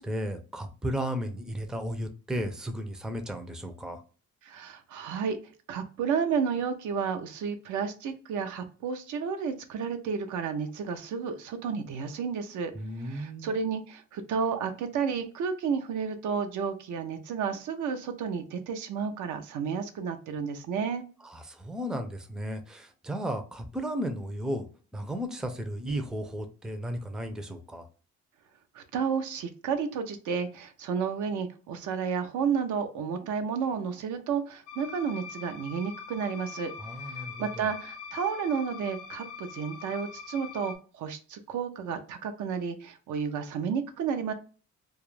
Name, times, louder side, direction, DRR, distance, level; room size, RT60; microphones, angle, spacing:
voice 1, 0.0-4.0 12.7-13.5 21.2-24.7 24.9-27.9 36.8-37.7, equal, ahead, 7 dB, 0.4 m, -34 dB
voice 2, 4.4-5.4 5.7-12.7 13.0-21.0 28.7-36.7 37.0-44.3, right 6 dB, 80° right, 8 dB, 0.5 m, -31 dB
sound 1, 34.7-40.8, left 7 dB, 85° left, 0.5 m, -43 dB
2.3 x 2.0 x 3.1 m, 0.37 s
cardioid pair, 90°, 30 cm